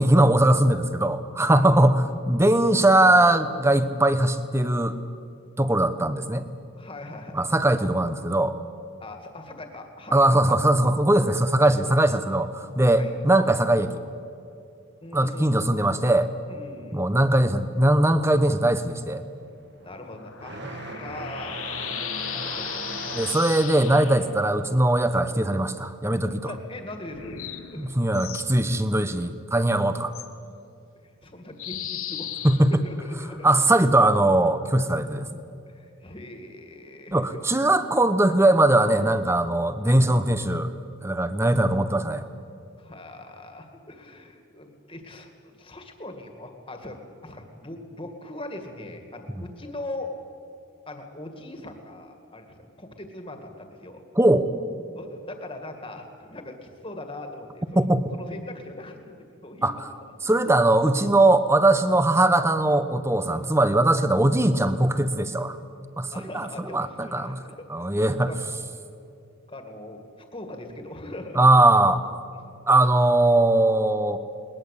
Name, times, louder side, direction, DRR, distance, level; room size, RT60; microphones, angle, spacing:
voice 1, 0.0-5.0 5.6-6.5 7.3-8.5 10.1-14.0 15.1-16.3 16.9-19.2 23.1-26.5 27.8-30.1 32.4-32.7 33.4-35.3 37.1-40.7 41.0-42.2 54.2-54.5 57.7-58.0 59.6-59.8 60.2-65.6 66.0-67.4 67.7-68.3 71.4-72.0 72.7-74.2, right 1 dB, 10° right, 11 dB, 0.9 m, -20 dB
voice 2, 1.5-2.1 6.7-7.5 9.0-10.2 12.9-13.1 15.0-15.8 16.5-17.1 19.8-23.0 26.4-27.9 31.0-33.5 35.7-37.4 39.8-40.0 42.8-47.0 47.2-50.1 50.9-54.0 54.9-57.8 58.1-59.2 59.4-59.7 63.3-63.5 66.1-68.4 69.5-71.4, left 2 dB, 25° left, 5 dB, 2.2 m, -41 dB
sound 1, 18.8-26.8 27.1-28.1 29.1-29.2 30.0-30.1 31.8-32.0, right 2 dB, 55° right, 1.6 m, -39 dB
sound 2, 19.8-24.3 27.1-28.5 30.1-30.3 31.6-33.5, left 10 dB, 80° left, 1.3 m, -36 dB
21.0 x 20.0 x 8.4 m, 2.5 s
head